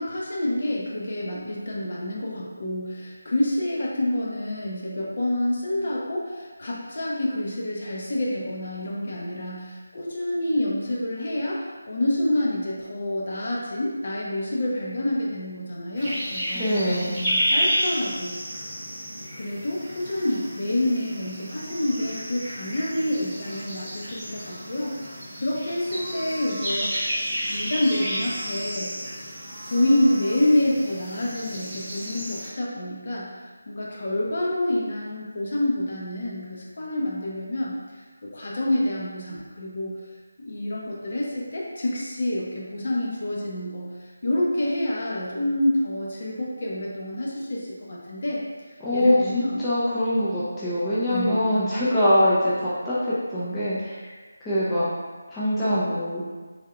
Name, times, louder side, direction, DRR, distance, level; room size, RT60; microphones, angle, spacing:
voice 1, 0.0-16.7 17.1-18.3 19.3-28.9 29.7-33.3 33.7-38.0 38.3-40.0 40.4-43.9 44.2-48.4 48.9-49.6 51.1-51.4, left 1 dB, 50° left, -4 dB, 0.7 m, -27 dB
sound 1, 16.0-32.5, equal, 10° right, 1.2 m, -31 dB
voice 2, 16.5-17.1 48.8-54.9 55.3-56.2, left 1 dB, 10° left, -12 dB, 0.5 m, -24 dB
3.4 x 2.6 x 2.4 m, 1.4 s
figure-of-eight pair, 160°, 0 cm